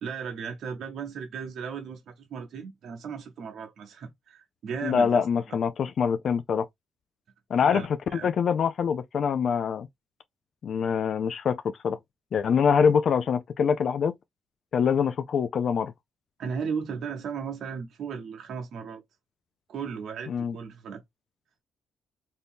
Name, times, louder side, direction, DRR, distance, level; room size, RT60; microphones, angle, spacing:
voice 1, 0.0-5.6 7.7-8.3 16.4-19.0 19.7-21.0, right 6 dB, 65° right, 0.7 m, -36 dB
voice 2, 4.8-6.7 7.5-7.8 8.2-9.9 10.6-12.0 12.3-14.1 14.7-15.9 20.3-20.5, left 6 dB, 55° left, 0.4 m, -24 dB
2.7 x 2.6 x 3.6 m
cardioid pair, 90°, 0 cm